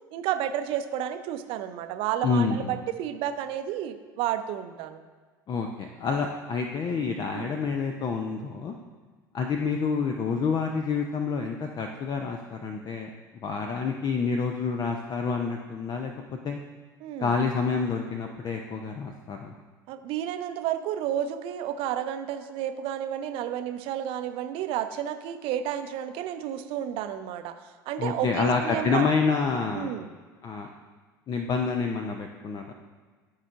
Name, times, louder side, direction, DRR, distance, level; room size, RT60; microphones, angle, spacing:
voice 1, 0.1-5.0 7.3-7.6 17.0-17.4 19.9-29.1 29.7-30.1, right 10 dB, 55° right, 9 dB, 0.6 m, -31 dB
voice 2, 2.2-2.8 5.5-8.7 9.3-13.1 13.4-16.6 17.2-19.5 28.0-29.9 30.4-30.7 31.3-32.7, left 5 dB, 35° left, 3 dB, 0.6 m, -28 dB
12.5 x 4.8 x 2.5 m, 1.5 s
hypercardioid pair, 70°, 11 cm